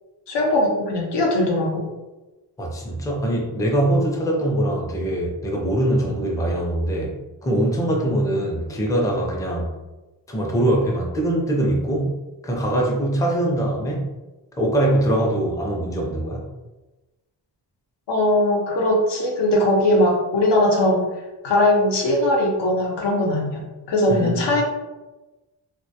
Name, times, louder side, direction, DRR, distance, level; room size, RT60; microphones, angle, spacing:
voice 1, 0.3-1.9 18.1-21.0 21.4-24.6, left 1 dB, 70° left, 0 dB, 0.7 m, -20 dB
voice 2, 2.6-7.1 7.4-9.8 10.3-12.2 12.4-14.1 14.6-16.4 24.1-24.6, right 1 dB, 10° left, -2 dB, 0.4 m, -22 dB
2.2 x 2.1 x 2.7 m, 1.1 s
cardioid pair, 105°, 43 cm